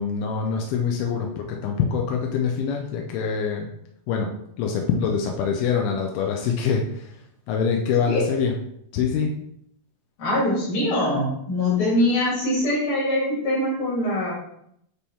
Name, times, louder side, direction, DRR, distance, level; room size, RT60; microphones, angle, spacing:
voice 1, 0.0-3.7 4.1-4.3 4.6-7.2 7.5-8.5 8.9-9.3, left 6 dB, 90° left, 1 dB, 2.6 m, -24 dB
voice 2, 10.2-14.3, left 1 dB, 70° left, -6 dB, 5.1 m, -23 dB
9.7 x 3.6 x 4.3 m, 0.73 s
omnidirectional pair, 4.3 m